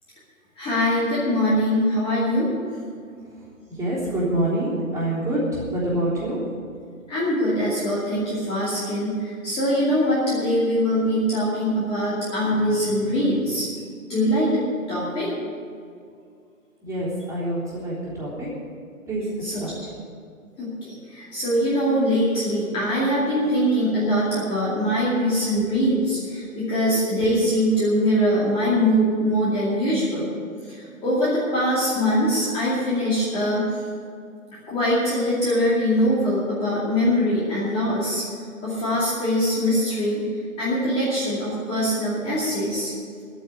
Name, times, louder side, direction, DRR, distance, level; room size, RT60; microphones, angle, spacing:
voice 1, 0.6-2.5 7.1-13.7 14.1-14.6 14.9-15.3 19.4-19.6 20.6-30.3 30.7-33.7 34.7-38.2 38.6-40.2 40.6-42.9, equal, 15° left, -9 dB, 2.5 m, -22 dB
voice 2, 3.8-6.4 16.8-18.5 19.1-19.2 19.6-19.7, right 1 dB, 10° right, -8 dB, 3.4 m, -26 dB
11.0 x 9.2 x 9.5 m, 2.4 s
hypercardioid pair, 150°, 41 cm